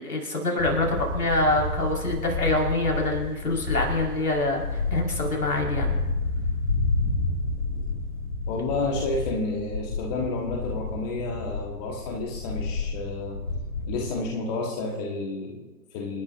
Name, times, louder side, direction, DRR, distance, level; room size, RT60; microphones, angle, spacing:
voice 1, 0.0-5.9, left 2 dB, 70° left, 0 dB, 5.5 m, -25 dB
sound 1, 0.6-14.3, left 3 dB, 50° left, 4.5 m, -30 dB
voice 2, 8.5-13.4 13.9-16.2, left 3 dB, 25° left, 0 dB, 1.7 m, -30 dB
28.5 x 11.5 x 2.8 m, 1.1 s
figure-of-eight pair, 125°, 47 cm